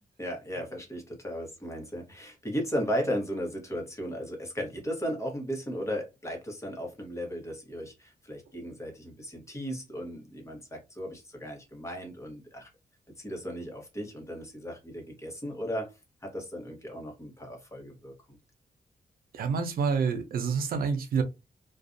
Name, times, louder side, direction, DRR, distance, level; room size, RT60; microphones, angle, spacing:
voice 1, 0.2-12.7 13.2-15.9 16.2-18.4, equal, 20° left, 1.0 m, -36 dB
voice 2, 19.3-21.2, right 5 dB, 90° right, 0.5 m, -28 dB
2.5 x 2.2 x 2.5 m
cardioid pair, 95°, 15 cm